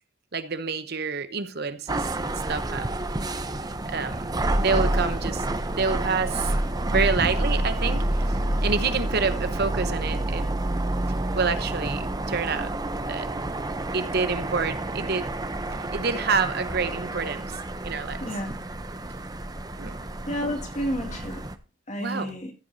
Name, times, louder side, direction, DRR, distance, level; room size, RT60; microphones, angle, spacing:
voice 1, 0.3-2.1 2.5-2.9 3.9-4.2 4.6-5.4 5.8-6.6 6.9-8.3 8.6-10.4 11.3-12.7 13.1-13.3 13.9-15.3 15.9-18.2 19.8-19.9 22.0-22.3, right 5 dB, 50° right, 0.9 m, -27 dB
sound 1, 1.9-21.6, right 1 dB, 20° right, 0.7 m, -29 dB
voice 2, 18.2-18.5 20.3-21.5 21.9-22.5, equal, 35° left, 2.2 m, -30 dB
15.0 x 7.9 x 2.7 m
head